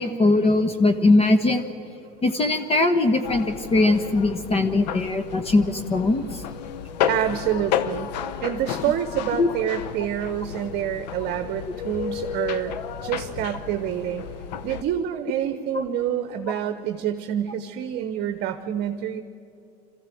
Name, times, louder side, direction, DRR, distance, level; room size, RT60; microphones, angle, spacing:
voice 1, 0.0-1.6 2.2-6.4 9.3-9.5 15.7-15.8, left 2 dB, 30° left, 8 dB, 1.3 m, -20 dB
sound 1, 3.2-14.8, left 9 dB, 85° left, 0.9 m, -32 dB
voice 2, 7.1-14.3 14.6-19.2, right 10 dB, 50° right, 9 dB, 1.0 m, -27 dB
23.5 x 14.5 x 7.7 m, 2.8 s
supercardioid pair, 100°, 21 cm